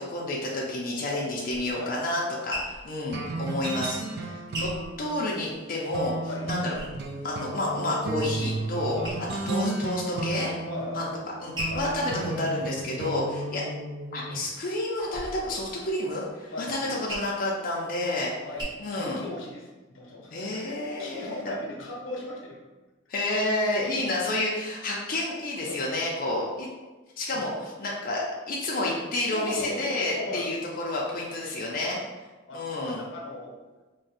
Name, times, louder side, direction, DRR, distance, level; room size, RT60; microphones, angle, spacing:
voice 1, 0.0-4.7 5.0-6.1 6.4-6.7 7.2-9.0 9.5-10.5 10.9-11.1 11.4-13.6 14.1-18.3 18.8-19.2 20.3-21.5 23.1-26.7 27.2-32.0 32.5-33.0, left 2 dB, 45° left, -4 dB, 0.4 m, -30 dB
sound 1, 1.5-5.8 6.2-7.4 7.8-8.6 9.0-9.6 10.0-10.6 11.1-13.8 14.3-18.6, equal, 25° right, 0.8 m, -40 dB
sound 2, 3.1-14.4, right 2 dB, 55° right, 0.4 m, -34 dB
voice 2, 8.9-9.5 10.6-11.0 11.7-11.9 16.5-17.0 18.4-22.6 25.6-25.8 27.3-27.4 29.3-30.5 31.8-32.0 32.5-33.6, left 2 dB, 90° left, -1 dB, 0.7 m, -38 dB
2.5 x 2.1 x 4.0 m, 1.2 s
head